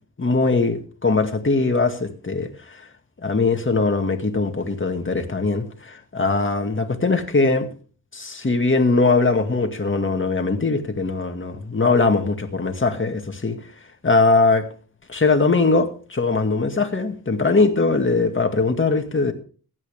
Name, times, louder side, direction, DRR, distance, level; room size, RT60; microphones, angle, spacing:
voice 1, 0.2-2.8 3.2-7.7 8.1-13.6 14.0-14.7 15.1-19.3, left 3 dB, 30° left, 2.1 m, -21 dB
15.5 x 11.0 x 3.6 m
wide cardioid pair, 85°, 38 cm